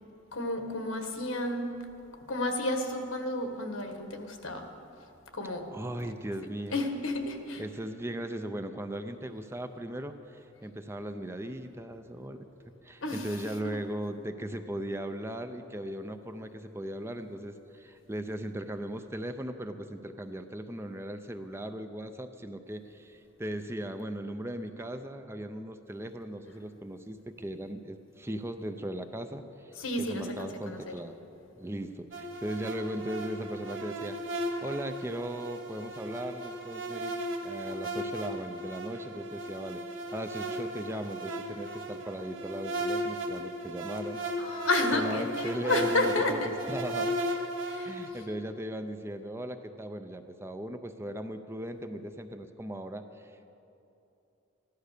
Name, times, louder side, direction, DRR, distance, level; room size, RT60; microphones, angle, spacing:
voice 1, 0.3-1.7 2.3-4.7 5.3-5.7 6.7-7.6 13.0-13.3 13.6-13.8 29.8-30.9 44.4-46.5 47.7-47.9, left 2 dB, 80° left, 5 dB, 1.5 m, -31 dB
voice 2, 5.7-6.8 7.6-12.5 12.8-31.2 31.6-37.2 37.4-44.2 44.9-47.2 47.8-53.4, right 1 dB, 10° right, 8 dB, 0.5 m, -38 dB
sound 1, 32.1-48.1, equal, 65° right, 1.6 m, -36 dB
15.5 x 11.5 x 6.6 m, 2.8 s
head